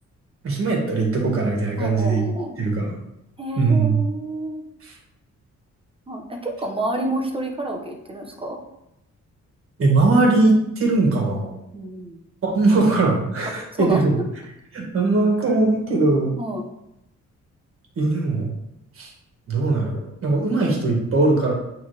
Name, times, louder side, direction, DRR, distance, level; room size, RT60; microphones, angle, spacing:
voice 1, 0.4-2.2 2.6-3.0 3.6-4.0 4.8-5.0 9.8-11.5 12.4-14.1 14.7-16.3 18.0-18.5 19.0-19.1 19.5-21.5, right 3 dB, 50° right, -1 dB, 1.8 m, -20 dB
voice 2, 1.8-2.5 3.4-4.6 6.1-8.6 11.7-12.2 13.6-14.0 16.4-16.6, right 1 dB, 20° right, 2 dB, 0.8 m, -29 dB
8.5 x 3.5 x 3.4 m, 0.83 s
wide cardioid pair, 155°, 29 cm